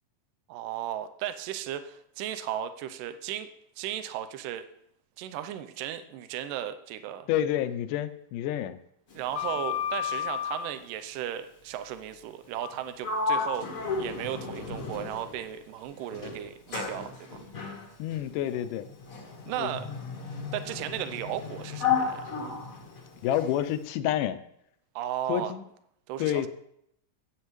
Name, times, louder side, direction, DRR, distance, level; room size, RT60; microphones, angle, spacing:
voice 1, 0.5-3.5 3.8-4.7 5.2-7.3 9.1-17.4 19.5-19.9 20.5-22.2 25.0-25.5 26.1-26.5, right 11 dB, 80° right, 10 dB, 2.2 m, -35 dB
voice 2, 7.3-8.8 18.0-18.9 19.6-20.0 23.2-24.4 25.3-25.6 26.2-26.5, left 11 dB, 80° left, 11 dB, 2.1 m, -29 dB
Sliding door, 9.1-10.7 12.5-12.8 13.0-15.5 16.1-23.6, left 6 dB, 55° left, 0.9 m, -33 dB
15.0 x 8.6 x 3.1 m, 0.74 s
omnidirectional pair, 4.0 m